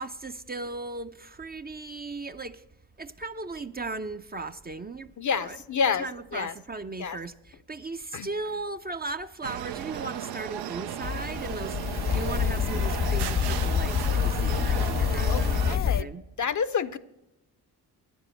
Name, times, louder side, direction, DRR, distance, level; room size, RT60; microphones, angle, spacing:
voice 1, 0.0-2.6 3.0-5.1 5.4-11.8 12.1-16.2, right 3 dB, 20° right, 0.6 m, -37 dB
voice 2, 5.2-6.1 6.3-6.5 7.0-7.2 8.1-8.3 15.3-16.1 16.4-17.0, left 6 dB, 45° left, 0.7 m, -28 dB
sound 1, 9.4-15.8, right 11 dB, 65° right, 0.6 m, -35 dB
sound 2, 11.0-16.0, left 8 dB, 25° left, 0.4 m, -27 dB
9.5 x 7.2 x 7.6 m
supercardioid pair, 55°, 42 cm